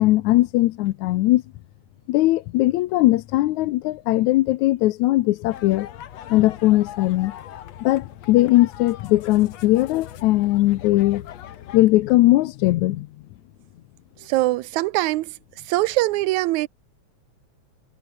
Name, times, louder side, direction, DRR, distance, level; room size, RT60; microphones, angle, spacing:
voice 1, 0.0-1.4 2.1-5.9 6.3-7.3 7.8-11.2 11.7-13.1, left 17 dB, 80° left, 2.1 m, -19 dB
sound 1, 5.5-11.8, left 11 dB, 65° left, 2.5 m, -40 dB
voice 2, 14.3-15.3 15.7-16.7, right 18 dB, 85° right, 2.1 m, -22 dB
omnidirectional pair, 3.3 m